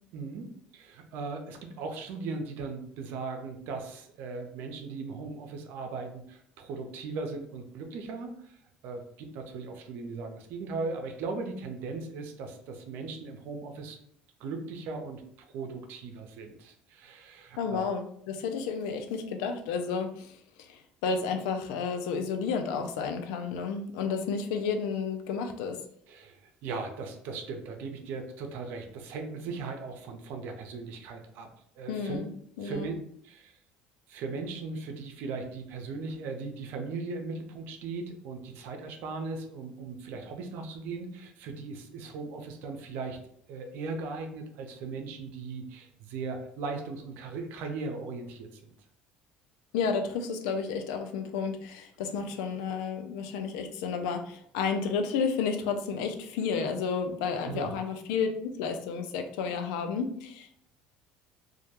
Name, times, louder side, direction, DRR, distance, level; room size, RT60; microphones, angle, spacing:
voice 1, 0.1-8.6 8.8-14.0 14.4-15.2 15.5-17.9 26.1-31.5 31.8-32.2 32.6-33.0 33.2-33.6 34.1-43.2 43.5-48.8 57.5-57.7, right 4 dB, 70° right, 4 dB, 0.5 m, -38 dB
voice 2, 17.6-25.8 31.9-32.3 32.6-32.9 49.7-60.6, left 5 dB, 85° left, 6 dB, 0.3 m, -31 dB
2.2 x 2.1 x 2.8 m, 0.67 s
supercardioid pair, 95°, 4 cm